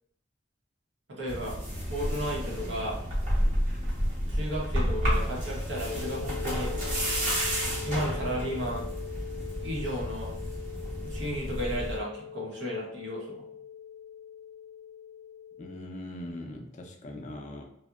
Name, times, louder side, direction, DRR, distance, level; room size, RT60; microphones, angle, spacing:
voice 1, 1.1-1.6 1.9-3.0 4.3-6.7 7.8-8.9 9.6-10.3 11.0-13.4, equal, 85° right, -2 dB, 0.8 m, -34 dB
sound 1, 1.3-12.0, equal, 45° right, 0.8 m, -31 dB
sound 2, 5.9-15.8, left 8 dB, 5° right, 0.6 m, -42 dB
voice 2, 15.6-17.6, left 1 dB, 40° left, 3 dB, 0.4 m, -40 dB
2.7 x 2.0 x 2.3 m, 0.79 s
head